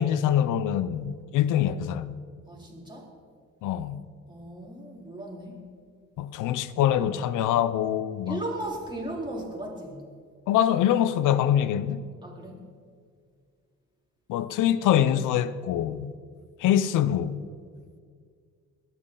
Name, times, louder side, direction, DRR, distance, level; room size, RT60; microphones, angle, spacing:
voice 1, 0.0-2.1 3.6-4.0 6.2-8.4 10.5-12.0 14.3-16.1 16.6-17.4, left 10 dB, 90° left, 0.7 m, -24 dB
voice 2, 2.5-3.1 4.3-5.6 8.2-10.0 12.2-12.6, right 1 dB, 15° right, 4.2 m, -36 dB
21.0 x 12.0 x 3.9 m
cardioid pair, 90°, 30 cm